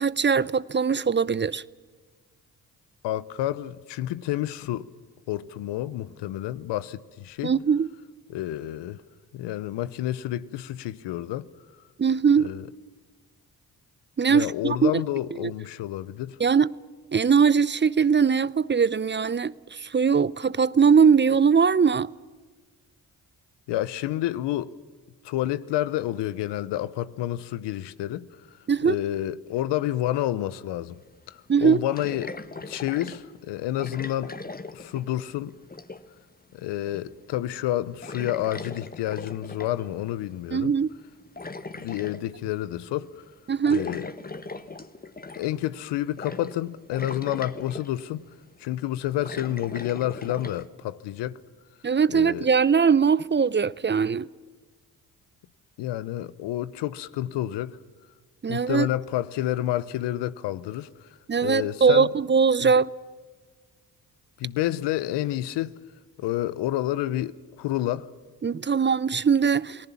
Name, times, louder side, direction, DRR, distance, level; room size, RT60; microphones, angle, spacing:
voice 1, 0.0-1.6 7.4-7.9 12.0-12.5 14.2-15.0 15.4-15.5 16.4-16.7 17.1-22.1 28.7-29.0 31.5-31.8 40.5-40.9 43.5-43.8 51.8-54.3 58.4-58.9 61.3-62.9 68.4-69.9, right 6 dB, 25° right, 0.6 m, -21 dB
voice 2, 3.0-4.9 5.3-7.6 8.3-9.0 9.3-11.5 12.4-12.7 14.3-16.4 23.7-24.7 25.2-28.3 28.8-31.0 31.3-32.3 32.7-34.3 34.7-35.5 36.5-40.7 41.8-43.2 43.7-44.1 45.4-48.2 48.6-51.4 52.1-52.5 55.8-57.8 58.5-60.9 61.4-62.1 62.6-62.7 64.4-65.7 66.2-68.1, left 13 dB, 75° left, 0.9 m, -29 dB
sound 1, 30.9-31.0 31.9-33.2 33.8-35.3 35.6-36.2 36.9-37.2 37.5-37.7 38.0-39.9 41.0-42.2 43.7-45.6 46.2-46.6 46.9-48.0 48.8-50.7, left 3 dB, 20° left, 1.6 m, -39 dB
28.5 x 18.5 x 7.1 m
hypercardioid pair, 45°, 42 cm